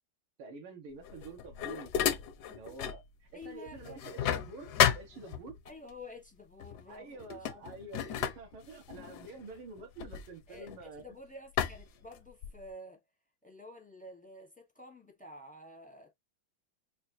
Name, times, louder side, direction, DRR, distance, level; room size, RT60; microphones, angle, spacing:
voice 1, 0.4-2.2 2.5-5.6 6.9-11.0, right 3 dB, 80° right, 1.9 m, -48 dB
sound 1, 1.0-3.1 3.4-5.7 6.6-6.8 7.2-11.0 11.6-12.7, left 9 dB, 70° left, 1.0 m, -33 dB
voice 2, 3.3-4.1 5.6-7.2 7.5-7.6 10.5-10.7 11.0-13.0 13.4-16.1, left 1 dB, 10° left, 0.5 m, -50 dB
5.4 x 2.5 x 2.6 m
omnidirectional pair, 2.2 m